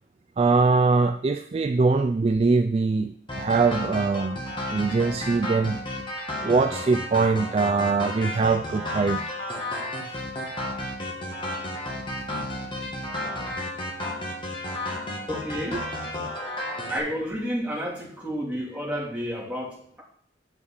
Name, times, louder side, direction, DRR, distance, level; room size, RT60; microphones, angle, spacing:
voice 1, 0.4-4.4 4.7-5.8 6.4-9.2 14.0-14.1, right 4 dB, 35° right, 6 dB, 0.3 m, -22 dB
sound 1, 3.3-17.0, left 1 dB, 25° left, 1.8 m, -32 dB
voice 2, 15.3-15.9 16.8-20.0, equal, 5° right, -6 dB, 2.8 m, -31 dB
8.8 x 4.9 x 5.6 m, 0.64 s
head